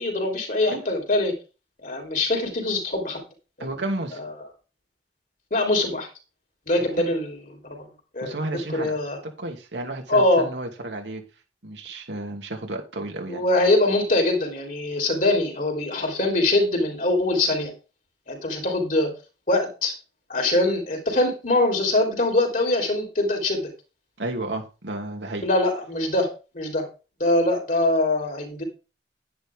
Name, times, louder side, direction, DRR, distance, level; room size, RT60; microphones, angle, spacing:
voice 1, 0.0-1.3 1.8-3.2 3.6-3.7 4.1-4.3 5.5-6.1 6.7-7.9 8.1-9.2 10.1-10.5 13.3-17.7 18.3-19.1 19.5-19.9 20.3-23.7 25.4-26.3 26.5-26.9 27.2-28.6, left 2 dB, 50° left, 2 dB, 3.7 m, -23 dB
voice 2, 3.6-4.2 7.0-7.1 8.2-8.9 9.4-11.2 11.6-13.4 24.2-25.4, right 2 dB, 85° right, 2 dB, 2.5 m, -32 dB
10.5 x 10.5 x 3.6 m, 0.32 s
head